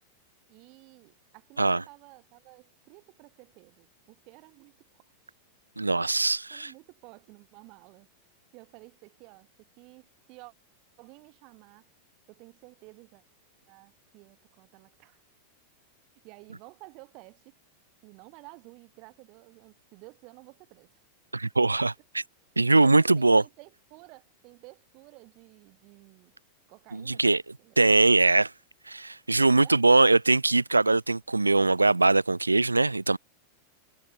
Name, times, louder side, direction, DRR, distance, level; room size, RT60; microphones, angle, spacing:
voice 1, 0.5-5.0 6.3-8.1 8.5-10.5 11.0-11.9 12.3-13.2 13.7-15.2 16.2-17.5 18.0-20.9 22.8-26.3 26.7-27.3 27.6-27.9 29.5-29.8, right 28 dB, 45° right, 4.2 m, -52 dB
voice 2, 5.8-6.7 21.3-22.2 22.6-23.4 26.9-27.4 27.8-28.5 28.9-33.2, right 3 dB, 80° right, 0.4 m, -22 dB
figure-of-eight pair, 90°, 0 cm